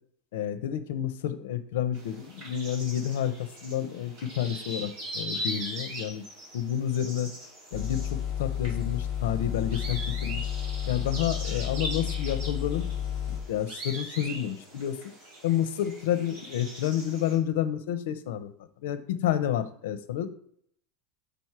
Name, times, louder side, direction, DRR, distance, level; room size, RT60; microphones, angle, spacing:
voice 1, 0.3-6.2 6.5-7.3 7.7-10.5 10.9-12.9 13.5-15.0 15.4-18.5 18.8-20.3, left 10 dB, 85° left, 12 dB, 0.7 m, -29 dB
sound 1, 1.9-17.4, right 1 dB, 40° right, 2.5 m, -41 dB
sound 2, 7.7-13.4, left 9 dB, 45° left, 1.5 m, -32 dB
5.2 x 4.4 x 4.7 m, 0.65 s
supercardioid pair, 170°, 0 cm